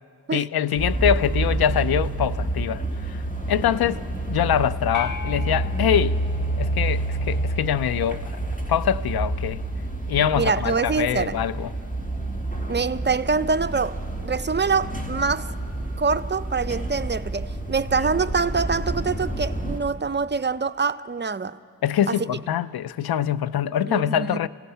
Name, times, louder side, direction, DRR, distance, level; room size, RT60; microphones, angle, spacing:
voice 1, 0.3-3.2 3.5-6.2 6.6-8.3 8.7-9.6 10.1-11.7 18.0-18.1 21.8-24.5, left 10 dB, 80° left, 0.5 m, -24 dB
sound 1, 0.8-19.8, right 2 dB, 20° left, 2.3 m, -28 dB
sound 2, 4.9-7.4, left 7 dB, 60° left, 0.9 m, -37 dB
voice 2, 10.4-11.4 12.7-14.0 14.2-15.5 16.0-21.6 22.1-22.2 23.9-24.5, right 5 dB, 30° right, 0.5 m, -25 dB
27.0 x 17.0 x 5.6 m
cardioid pair, 55°, 37 cm